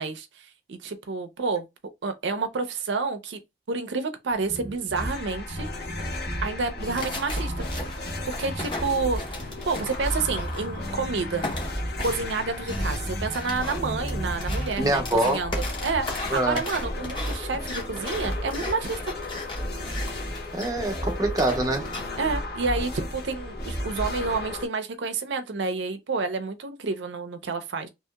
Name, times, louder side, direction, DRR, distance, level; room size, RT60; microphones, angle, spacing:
voice 1, 0.0-1.7 2.0-3.4 3.7-5.7 6.4-7.7 8.3-11.6 12.0-15.5 15.8-19.1 22.2-27.9, right 4 dB, 90° right, 0.6 m, -29 dB
sound 1, 4.3-15.3, right 1 dB, 55° right, 0.7 m, -39 dB
sound 2, 4.9-24.7, left 1 dB, 60° left, 1.1 m, -33 dB
sound 3, 7.0-11.0 11.4-22.3, left 2 dB, 25° left, 0.9 m, -37 dB
voice 2, 14.8-15.4 16.3-16.6 20.5-21.9, right 2 dB, 20° right, 0.7 m, -24 dB
2.9 x 2.8 x 2.2 m
head